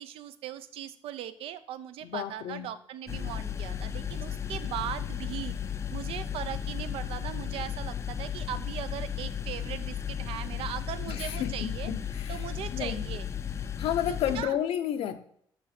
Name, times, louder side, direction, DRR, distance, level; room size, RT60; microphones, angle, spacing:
voice 1, 0.0-5.5 5.9-11.9 12.3-13.3 14.1-14.6, right 11 dB, 85° right, 12 dB, 0.6 m, -39 dB
voice 2, 2.0-2.7 11.1-13.0 13.8-15.2, left 10 dB, 80° left, 9 dB, 0.8 m, -32 dB
sound 1, 3.1-14.4, left 8 dB, 30° left, 0.4 m, -35 dB
6.2 x 5.8 x 5.9 m, 0.64 s
cardioid pair, 160°, 9 cm